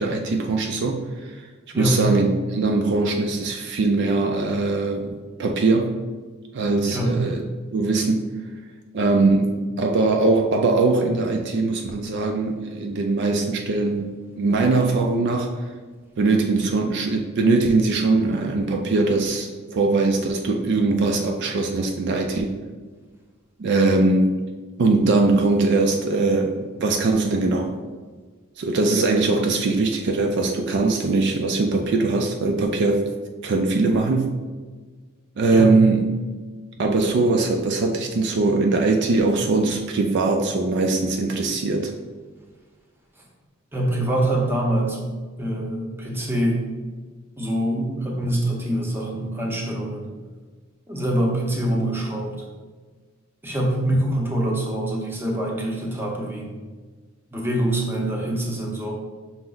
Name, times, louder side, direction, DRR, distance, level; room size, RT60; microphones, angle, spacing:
voice 1, 0.0-1.4 1.7-5.9 6.5-7.4 7.7-8.2 8.9-14.1 14.4-15.5 16.2-22.6 23.6-24.4 24.8-27.7 28.6-33.1 33.4-34.3 35.4-36.0 36.8-41.9, right 3 dB, 55° right, 3 dB, 0.3 m, -21 dB
voice 2, 43.7-45.0 45.4-46.6 47.4-50.0 50.9-52.4 53.4-56.5 57.3-58.9, right 1 dB, 10° right, -2 dB, 0.6 m, -24 dB
5.7 x 2.0 x 3.8 m, 1.4 s
head